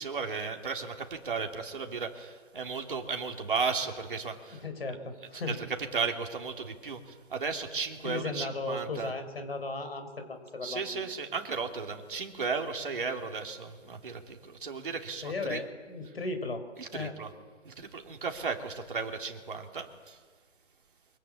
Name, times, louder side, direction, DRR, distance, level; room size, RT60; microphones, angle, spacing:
voice 1, 0.0-4.6 5.4-5.6 5.9-9.1 10.6-15.6 16.8-17.3 17.6-20.2, right 5 dB, 45° right, 3 dB, 3.2 m, -35 dB
voice 2, 4.6-5.6 8.0-11.0 15.2-16.6 16.9-17.1, left 3 dB, 55° left, 7 dB, 4.4 m, -36 dB
24.5 x 22.5 x 8.8 m, 1.5 s
hypercardioid pair, 180°, 37 cm